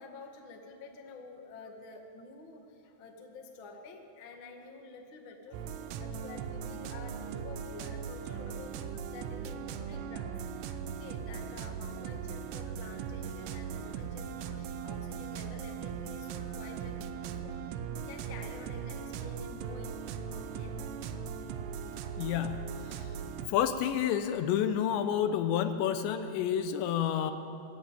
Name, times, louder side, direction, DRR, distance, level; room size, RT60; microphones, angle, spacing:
voice 1, 0.0-20.8, left 3 dB, 60° left, 2 dB, 1.3 m, -49 dB
sound 1, 5.5-23.5, right 7 dB, 85° right, 3.4 m, -39 dB
voice 2, 22.2-23.2 23.5-27.3, left 9 dB, 80° left, 9 dB, 2.9 m, -30 dB
20.0 x 14.5 x 9.0 m, 2.8 s
omnidirectional pair, 5.4 m